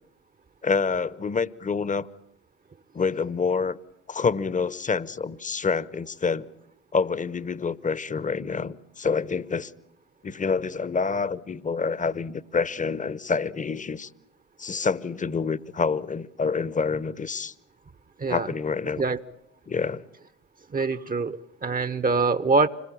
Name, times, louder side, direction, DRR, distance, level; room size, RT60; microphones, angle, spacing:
voice 1, 0.6-2.1 2.9-3.8 4.1-6.5 6.9-9.7 10.2-14.1 14.6-17.5 18.3-19.0 19.7-20.0, left 5 dB, 20° left, 1.0 m, -27 dB
voice 2, 20.7-22.7, right 4 dB, 25° right, 0.9 m, -24 dB
26.0 x 21.0 x 8.8 m
hypercardioid pair, 60°, 35 cm